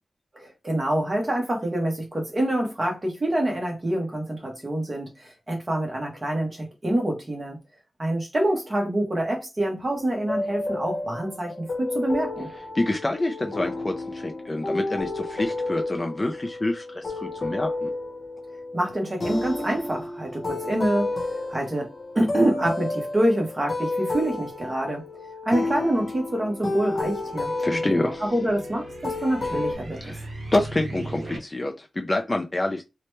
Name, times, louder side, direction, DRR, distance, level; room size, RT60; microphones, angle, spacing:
voice 1, 0.3-7.6 8.0-12.5 18.7-30.2, right 1 dB, 25° right, 0.9 m, -26 dB
sound 1, 9.9-29.7, left 2 dB, 35° left, 0.9 m, -31 dB
voice 2, 12.7-17.9 27.6-28.2 30.0-30.2 30.5-32.8, left 2 dB, 20° left, 0.4 m, -27 dB
sound 2, 26.5-31.4, right 2 dB, 50° right, 0.8 m, -40 dB
2.8 x 2.1 x 3.1 m
wide cardioid pair, 170°, 0 cm